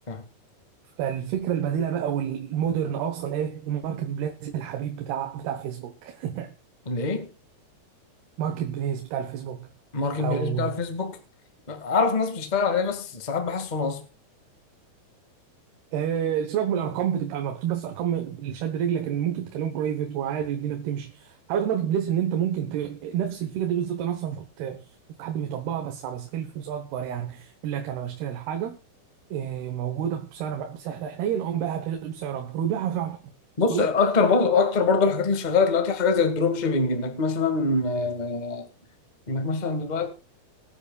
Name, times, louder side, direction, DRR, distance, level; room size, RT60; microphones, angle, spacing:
voice 1, 1.0-6.5 8.4-9.7 10.2-10.7 15.9-24.8 25.2-28.8 29.3-33.2 33.7-33.9, right 9 dB, 75° right, 3.1 m, -29 dB
voice 2, 6.8-7.3 9.9-11.2 11.7-14.0 33.6-38.7 39.3-40.1, left 4 dB, 45° left, 0.5 m, -24 dB
22.5 x 9.9 x 2.4 m
omnidirectional pair, 4.6 m